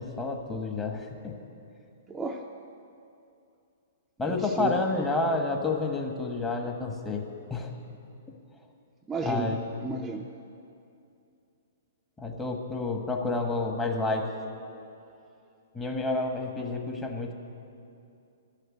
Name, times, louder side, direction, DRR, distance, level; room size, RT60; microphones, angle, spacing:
voice 1, 0.0-1.3 4.2-7.2 7.5-7.7 9.2-9.6 12.2-14.3 15.7-17.3, left 3 dB, 15° left, 2 dB, 1.4 m, -29 dB
voice 2, 2.1-2.4 4.2-5.1 9.1-10.3, right 2 dB, 10° right, 1 dB, 0.6 m, -34 dB
12.5 x 6.6 x 9.8 m, 2.6 s
hypercardioid pair, 125°, 0 cm